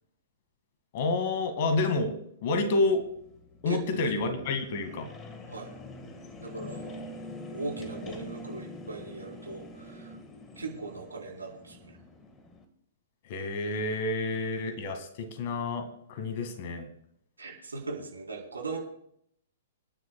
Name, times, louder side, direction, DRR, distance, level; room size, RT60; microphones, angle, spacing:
voice 1, 0.9-2.1 2.4-3.0 3.6-5.1 13.3-16.9, left 3 dB, 45° left, 7 dB, 2.0 m, -29 dB
sound 1, 2.9-12.6, left 1 dB, 20° left, 1.7 m, -45 dB
voice 2, 3.7-4.0 5.5-5.7 6.4-7.0 7.4-10.2 10.6-12.0 14.3-14.4 17.4-18.8, right 3 dB, 75° right, 0 dB, 4.1 m, -39 dB
28.0 x 10.0 x 2.4 m, 0.73 s
figure-of-eight pair, 110°, 0 cm